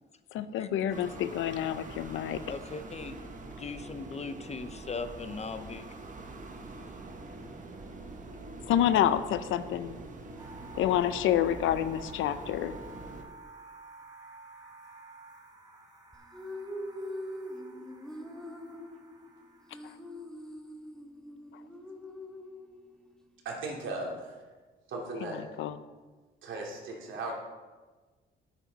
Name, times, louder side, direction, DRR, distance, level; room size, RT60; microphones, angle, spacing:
voice 1, 0.3-2.4 8.7-10.0 10.7-12.7 25.2-25.8, left 11 dB, 80° left, 13 dB, 0.6 m, -28 dB
sound 1, 0.9-13.2, right 2 dB, 40° right, 1.4 m, -44 dB
voice 2, 2.5-3.3 3.6-5.8, left 4 dB, 35° left, 10 dB, 0.7 m, -39 dB
Buzzing Lights, 10.4-20.1, right 3 dB, 20° right, 2.2 m, -51 dB
Nayruslove - Girl Vocalizing cleaned, 16.1-23.2, left 1 dB, 5° left, 1.1 m, -43 dB
voice 3, 23.4-24.3 24.9-25.4 26.4-27.3, right 2 dB, 75° right, -1 dB, 2.7 m, -37 dB
10.5 x 8.8 x 4.1 m, 1.3 s
cardioid pair, 90°, 20 cm